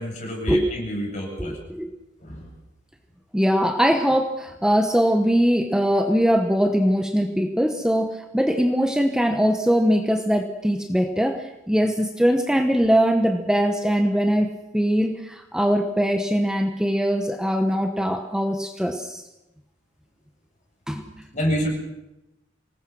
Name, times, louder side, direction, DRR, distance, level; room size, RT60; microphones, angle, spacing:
voice 1, 0.0-1.6 2.2-2.5 21.3-21.7, equal, 40° left, 0 dB, 7.9 m, -28 dB
voice 2, 1.4-1.9 3.3-19.2 20.9-21.2, equal, 5° right, 6 dB, 1.0 m, -21 dB
25.5 x 19.5 x 6.1 m, 0.94 s
head